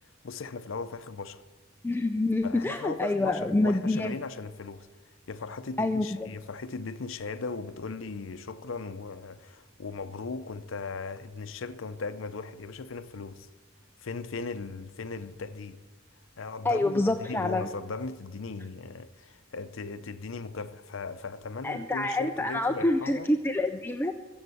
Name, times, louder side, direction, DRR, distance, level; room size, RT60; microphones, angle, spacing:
voice 1, 0.2-1.4 2.4-4.9 5.3-13.5 14.0-15.8 16.4-23.3, left 4 dB, 70° left, 0.6 m, -38 dB
voice 2, 1.8-4.1 5.8-6.3 16.6-17.7 21.6-24.1, left 2 dB, 10° left, 0.4 m, -27 dB
14.5 x 7.2 x 8.2 m
head